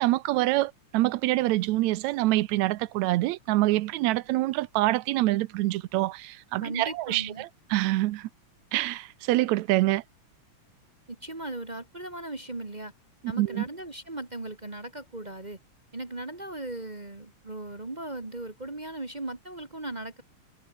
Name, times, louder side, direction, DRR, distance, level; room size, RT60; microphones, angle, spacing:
voice 1, 0.0-8.3 8.7-10.0 13.4-13.6, right 17 dB, 75° right, 1.9 m, -26 dB
voice 2, 6.6-7.4 11.1-12.9 13.3-15.6 15.9-20.2, right 2 dB, 20° right, 1.1 m, -37 dB
omnidirectional pair, 3.4 m